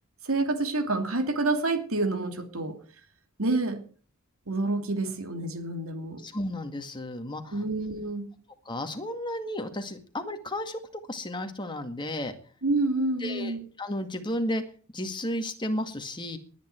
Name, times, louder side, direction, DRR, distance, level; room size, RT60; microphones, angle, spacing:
voice 1, 0.2-2.8 3.4-3.8 4.5-6.2 7.5-8.3 12.6-13.6, right 2 dB, 65° right, 7 dB, 2.8 m, -28 dB
voice 2, 6.2-7.6 8.7-10.8 11.1-12.4 13.2-13.5 13.8-14.6 14.9-16.4, left 1 dB, 20° left, 6 dB, 2.1 m, -33 dB
19.5 x 10.5 x 4.6 m, 0.41 s
head